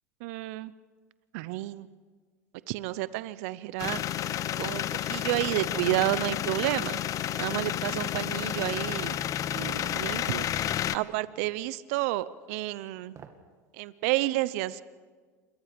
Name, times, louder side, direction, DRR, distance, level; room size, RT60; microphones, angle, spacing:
voice 1, 0.2-0.7 1.3-1.9 2.7-4.3 4.6-7.0 7.4-9.2 9.5-13.2 13.7-14.8, right 17 dB, 70° right, 17 dB, 0.8 m, -31 dB
sound 1, 3.8-11.0, left 11 dB, 40° left, 0.9 m, -31 dB
sound 2, 9.7-9.9 11.4-11.7 13.1-13.5 13.9-14.0, right 7 dB, 40° right, 2.4 m, -50 dB
28.0 x 22.5 x 5.2 m, 1.5 s
hypercardioid pair, 95°, 8 cm